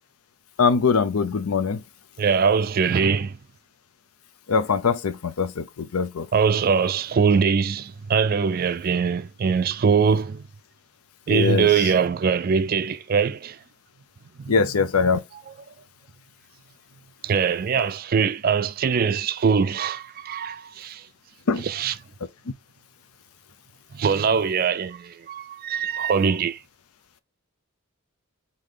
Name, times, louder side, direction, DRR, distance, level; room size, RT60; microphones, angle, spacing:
voice 1, 0.6-1.8 4.5-6.3 11.3-11.7 14.5-15.2 21.5-21.6, left 5 dB, 80° left, 0.5 m, -22 dB
voice 2, 2.2-3.4 6.3-10.4 11.3-13.6 14.4-14.7 15.3-15.5 17.2-21.1 21.6-22.0 23.9-26.6, right 6 dB, 40° right, 0.3 m, -22 dB
4.9 x 2.8 x 3.7 m
head